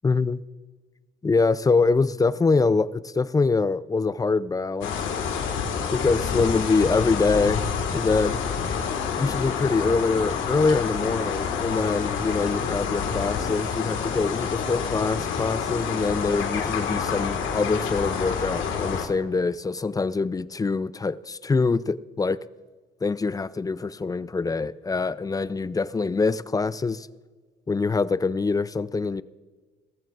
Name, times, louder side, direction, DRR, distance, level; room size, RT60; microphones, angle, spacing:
voice 1, 0.0-0.4 1.2-5.0 5.9-7.6 7.9-8.4 9.2-22.4 23.0-27.1 27.7-29.2, left 4 dB, 20° left, 17 dB, 0.4 m, -24 dB
sound 1, 4.8-19.1, left 6 dB, 85° left, 1.7 m, -28 dB
18.5 x 14.5 x 2.5 m, 1.4 s
cardioid pair, 90°, 20 cm